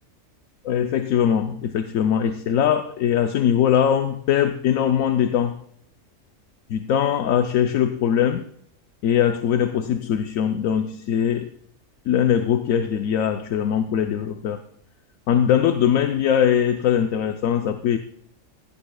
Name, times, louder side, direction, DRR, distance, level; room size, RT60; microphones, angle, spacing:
voice 1, 0.6-5.6 6.7-8.4 9.0-11.5 12.1-14.6 15.3-18.0, left 9 dB, 80° left, 1.1 m, -21 dB
16.5 x 16.0 x 2.3 m
omnidirectional pair, 1.4 m